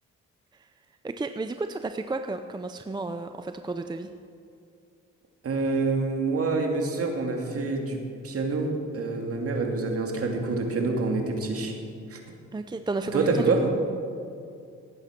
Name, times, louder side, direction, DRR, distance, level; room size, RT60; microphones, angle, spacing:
voice 1, 1.0-4.1 12.5-13.7, right 3 dB, 15° right, 8 dB, 0.5 m, -32 dB
voice 2, 5.4-8.0 8.2-8.7 8.9-11.7 12.1-12.2 13.1-13.6, right 3 dB, 50° right, 2 dB, 2.5 m, -26 dB
18.0 x 8.8 x 6.0 m, 2.5 s
cardioid pair, 90°, 30 cm